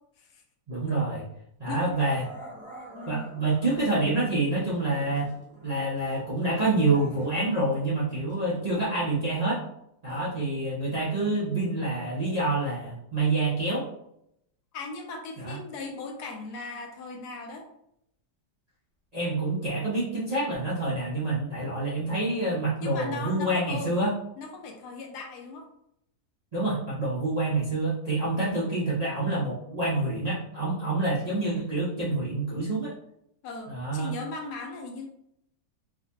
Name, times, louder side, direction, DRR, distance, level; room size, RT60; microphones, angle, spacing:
voice 1, 0.7-1.2 1.6-2.3 3.1-5.3 5.6-9.6 10.0-13.9 15.4-15.6 19.1-24.1 26.5-32.9 33.7-34.1, right 2 dB, 80° right, -7 dB, 0.3 m, -27 dB
Growling, 0.9-1.1 1.9-4.0 4.5-6.3 6.6-8.8, right 1 dB, 10° right, 0.5 m, -46 dB
voice 2, 14.7-17.7 22.8-24.0 24.4-25.7 33.4-35.1, left 3 dB, 75° left, 2 dB, 1.2 m, -38 dB
4.6 x 2.2 x 2.7 m, 0.76 s
omnidirectional pair, 1.8 m